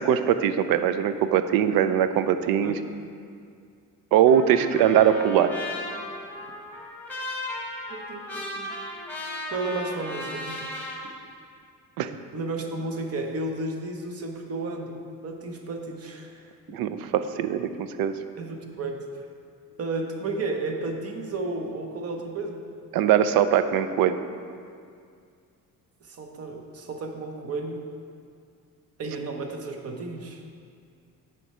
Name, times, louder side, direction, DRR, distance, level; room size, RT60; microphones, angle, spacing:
voice 1, 0.0-2.7 4.1-5.5 12.0-12.1 16.7-17.7 18.0-18.2 22.9-24.2, right 9 dB, 85° right, 11 dB, 0.5 m, -21 dB
Trumpet, 4.3-11.0, left 1 dB, 5° left, 1.1 m, -36 dB
voice 2, 7.9-8.7 9.5-10.7 12.3-15.0 15.2-16.5 18.4-19.3 19.8-22.6 26.0-27.8 29.0-30.4, right 2 dB, 45° right, 3 dB, 0.8 m, -33 dB
7.7 x 4.4 x 5.4 m, 2.2 s
cardioid pair, 145°, 34 cm